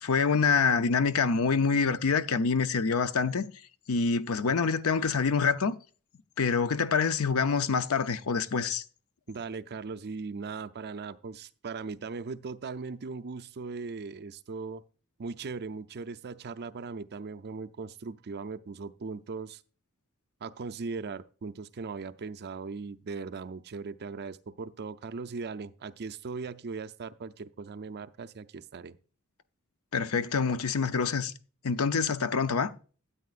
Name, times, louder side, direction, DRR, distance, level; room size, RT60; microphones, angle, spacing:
voice 1, 0.0-3.5 3.9-5.7 6.4-8.8 29.9-31.3 31.6-32.7, left 5 dB, 70° left, 0.6 m, -26 dB
voice 2, 9.3-14.8 15.2-19.6 20.4-29.0, right 4 dB, 50° right, 0.5 m, -39 dB
13.0 x 8.4 x 2.5 m
head